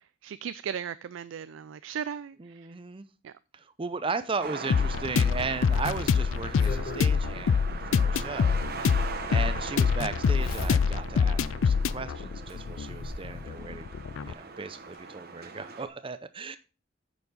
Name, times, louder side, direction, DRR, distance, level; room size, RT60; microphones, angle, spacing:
voice 1, 0.2-2.7 3.2-3.3, right 8 dB, 80° right, 0.4 m, -37 dB
voice 2, 2.4-3.1 3.5-13.9 14.2-16.6, right 4 dB, 30° right, 0.6 m, -36 dB
sound 1, 4.4-15.9, right 4 dB, 55° right, 1.1 m, -41 dB
sound 2, 4.7-14.3, left 6 dB, 85° left, 0.4 m, -26 dB
Zipper (clothing), 5.3-7.1 8.5-8.6 10.2-11.2 11.7-11.8 12.5-13.3 14.5-14.6 14.9-15.0, left 1 dB, 50° left, 3.3 m, -39 dB
8.8 x 7.0 x 4.0 m
head